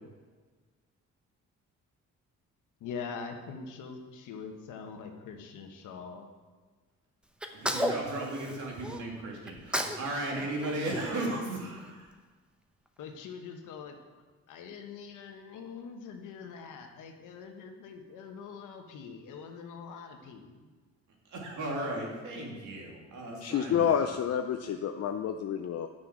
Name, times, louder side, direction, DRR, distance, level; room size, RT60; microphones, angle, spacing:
voice 1, 2.8-6.3 13.0-14.0 14.5-20.7, left 5 dB, 85° left, 4 dB, 1.3 m, -43 dB
Sneeze, 7.4-9.0 9.5-10.1 10.3-11.8, equal, 5° right, 0.9 m, -34 dB
voice 2, 7.5-12.1 21.3-23.9, right 1 dB, 75° right, -1 dB, 2.8 m, -36 dB
voice 3, 23.4-25.9, left 8 dB, 55° left, 6 dB, 0.6 m, -29 dB
9.4 x 6.5 x 6.0 m, 1.4 s
cardioid pair, 90°, 30 cm